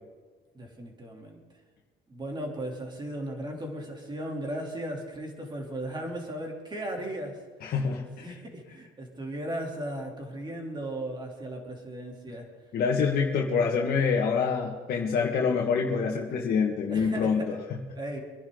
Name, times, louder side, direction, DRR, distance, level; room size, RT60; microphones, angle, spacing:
voice 1, 0.5-1.4 2.1-7.4 8.2-12.5 16.9-17.6 17.9-18.2, right 1 dB, 25° right, 1 dB, 3.3 m, -36 dB
voice 2, 7.6-8.3 12.7-17.4 17.7-17.8, left 5 dB, 60° left, -1 dB, 1.8 m, -26 dB
24.5 x 10.5 x 4.0 m, 1.4 s
cardioid pair, 110°, 17 cm